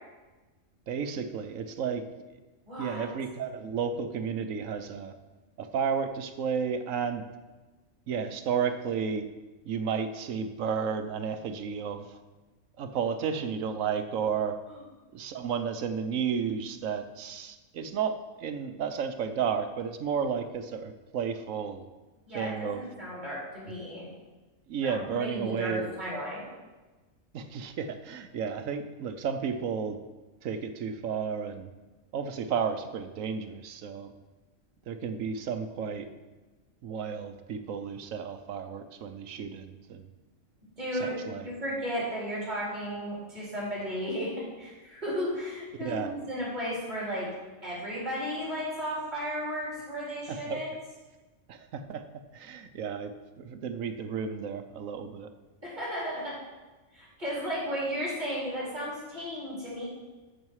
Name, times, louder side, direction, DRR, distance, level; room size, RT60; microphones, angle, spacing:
voice 1, 0.9-2.0 2.8-5.1 5.6-7.2 8.1-9.3 9.6-12.2 12.8-14.6 15.1-21.8 22.3-22.8 24.7-25.9 27.3-30.0 30.4-31.7 32.1-34.1 34.9-36.1 36.8-40.1 41.0-41.5 45.8-46.1 50.3-50.6 51.5-52.0 52.3-55.3, right 6 dB, 85° right, 9 dB, 1.2 m, -32 dB
voice 2, 2.7-3.1 14.7-14.8 22.3-24.1 24.8-26.5 40.8-44.3 44.6-47.3 47.6-50.7 55.6-56.3 56.9-59.9, equal, 35° right, -7 dB, 4.1 m, -34 dB
13.0 x 6.4 x 4.8 m, 1.2 s
omnidirectional pair, 1.3 m